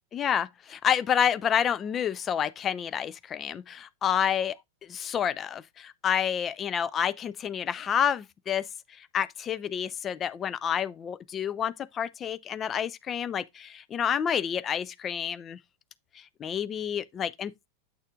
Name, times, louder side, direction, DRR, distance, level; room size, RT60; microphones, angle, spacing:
voice 1, 0.1-4.6 4.8-8.6 8.9-15.6 16.2-17.5, left 8 dB, 25° left, 0.4 m, -29 dB
8.3 x 6.5 x 2.4 m
figure-of-eight pair, 90°, 0 cm